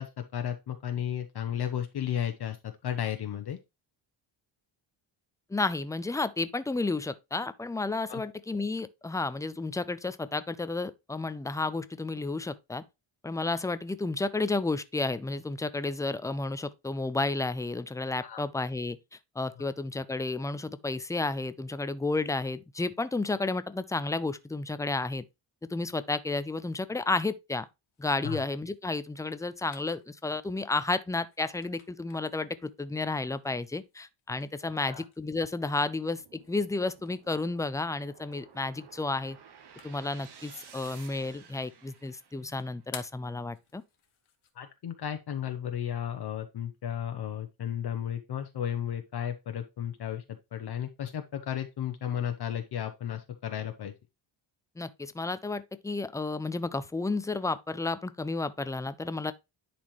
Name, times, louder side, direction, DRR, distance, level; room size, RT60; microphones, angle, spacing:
voice 1, 0.0-3.6 8.1-8.2 18.2-18.4 28.2-28.4 34.7-35.0 44.5-50.2 50.5-53.9, left 9 dB, 50° left, 0.9 m, -34 dB
voice 2, 5.5-12.8 13.2-19.0 19.4-25.2 25.7-27.7 28.0-39.4 39.8-43.8 54.8-59.3, left 3 dB, 10° left, 0.3 m, -32 dB
sound 1, 27.8-44.5, left 9 dB, 75° left, 1.6 m, -56 dB
sound 2, 35.7-42.9, right 7 dB, 55° right, 1.4 m, -54 dB
10.5 x 4.3 x 3.1 m
wide cardioid pair, 130°, 49 cm